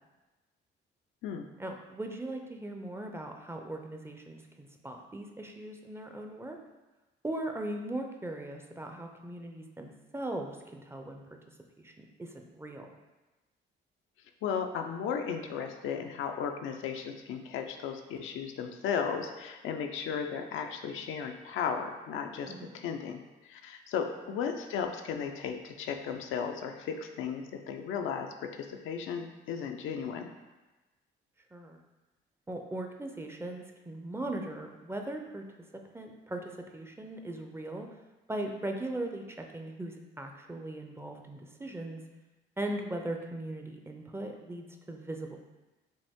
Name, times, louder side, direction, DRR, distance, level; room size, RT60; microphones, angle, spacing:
voice 1, 1.6-6.6 7.2-11.2 11.8-12.9 22.5-22.8 31.5-31.8 32.5-35.4 35.9-37.9 38.3-42.0 42.6-45.4, right 1 dB, 10° right, 3 dB, 0.5 m, -39 dB
voice 2, 14.4-22.6 22.8-30.3, left 7 dB, 85° left, 5 dB, 0.5 m, -35 dB
5.3 x 2.6 x 3.5 m, 1.1 s
cardioid pair, 90°, 20 cm